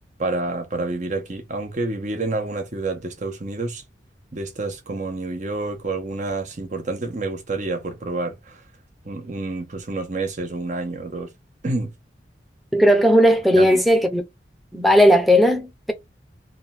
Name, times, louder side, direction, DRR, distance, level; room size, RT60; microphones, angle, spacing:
voice 1, 0.2-3.8 4.3-8.6 9.1-11.3 11.6-11.9 13.6-13.8, right 2 dB, 40° right, 0.8 m, -28 dB
voice 2, 12.7-14.2 14.7-15.9, equal, ahead, 0.7 m, -16 dB
3.6 x 2.4 x 4.2 m
head